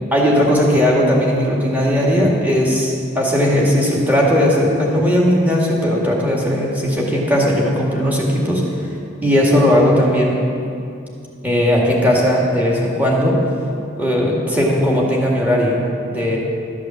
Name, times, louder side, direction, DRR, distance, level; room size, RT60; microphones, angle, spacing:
voice 1, 0.1-8.6 9.2-10.4 11.4-13.4 14.0-16.4, equal, 10° right, -4 dB, 2.0 m, -17 dB
13.0 x 8.6 x 7.4 m, 2.6 s
head